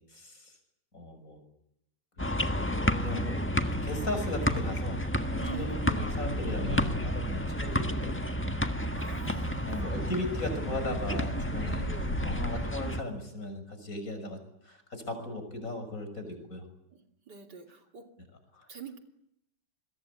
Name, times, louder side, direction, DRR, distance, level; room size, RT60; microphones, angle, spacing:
voice 1, 0.1-0.5 0.9-1.4 2.2-2.5 3.0-3.4 3.8-5.0 5.3-8.6 9.4-11.9 12.2-16.7 18.5-18.7, left 1 dB, 50° left, 7 dB, 6.7 m, -37 dB
sound 1, 2.2-13.0, equal, 10° left, 1.3 m, -31 dB
sound 2, 4.7-12.6, left 2 dB, 90° left, 6.9 m, -39 dB
voice 2, 5.3-6.0 9.0-10.0 11.9-12.1 16.9-17.0 17.3-18.1 18.7-19.0, right 7 dB, 70° right, 4 dB, 3.6 m, -43 dB
28.0 x 22.0 x 8.5 m, 0.79 s
omnidirectional pair, 1.9 m